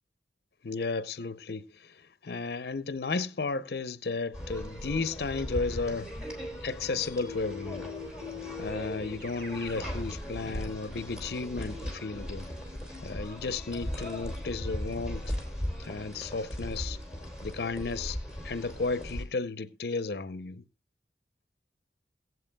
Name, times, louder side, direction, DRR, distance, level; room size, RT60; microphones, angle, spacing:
voice 1, 0.6-6.1 6.6-7.9 8.6-12.5 13.0-15.3 15.8-17.0 17.4-18.2 18.4-20.6, left 4 dB, 65° left, 0.6 m, -34 dB
sound 1, 4.3-19.2, equal, 5° right, 3.0 m, -38 dB
Keyboard (musical), 7.2-9.9, left 10 dB, 60° right, 6.7 m, -42 dB
21.5 x 7.9 x 2.2 m
head